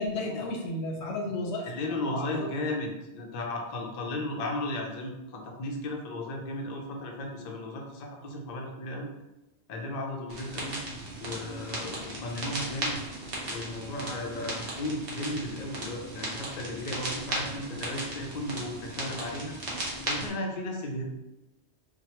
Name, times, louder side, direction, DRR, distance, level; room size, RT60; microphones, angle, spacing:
voice 1, 0.0-2.5, left 2 dB, 85° left, 1 dB, 0.9 m, -33 dB
voice 2, 1.6-9.1 9.7-10.8 11.2-13.0 13.5-19.6 20.1-21.0, left 1 dB, 55° left, 1 dB, 0.5 m, -35 dB
sound 1, 10.3-20.3, right 1 dB, 60° right, 0.9 m, -36 dB
2.9 x 2.2 x 2.9 m, 0.98 s
omnidirectional pair, 1.1 m